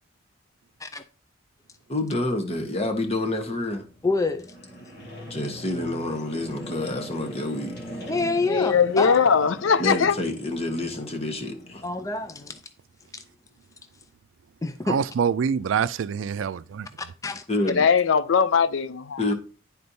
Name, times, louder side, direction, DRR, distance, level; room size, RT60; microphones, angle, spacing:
voice 1, 1.9-3.8 5.3-8.0 9.8-11.8 17.5-17.9 19.2-19.3, left 1 dB, 30° left, 1.1 m, -28 dB
sound 1, 3.8-12.6, equal, 55° left, 1.8 m, -41 dB
voice 2, 4.0-4.5 8.1-9.2 11.8-12.5 14.6-15.0 17.2-17.4, left 3 dB, 15° left, 0.4 m, -26 dB
voice 3, 8.5-10.2 17.6-19.3, left 6 dB, 85° left, 0.5 m, -20 dB
voice 4, 14.9-16.9, right 7 dB, 80° right, 0.4 m, -25 dB
11.0 x 4.3 x 2.7 m
head